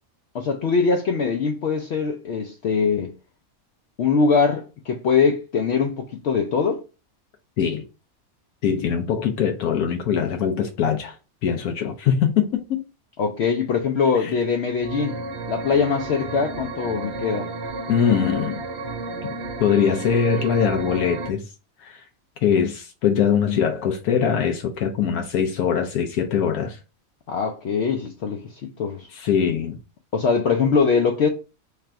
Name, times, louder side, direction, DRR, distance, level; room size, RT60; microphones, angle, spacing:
voice 1, 0.3-3.1 4.0-6.8 13.2-15.1 15.5-17.5 27.3-29.1 30.1-31.3, left 5 dB, 65° left, 0.7 m, -22 dB
voice 2, 8.6-11.1 11.4-12.8 14.2-14.3 17.9-18.6 19.2-19.3 19.6-21.4 21.8-22.0 22.4-26.8 29.1-29.8, left 7 dB, 85° left, 1.1 m, -22 dB
sound 1, 14.8-21.3, right 2 dB, 60° right, 0.8 m, -32 dB
3.4 x 2.5 x 4.3 m
omnidirectional pair, 1.5 m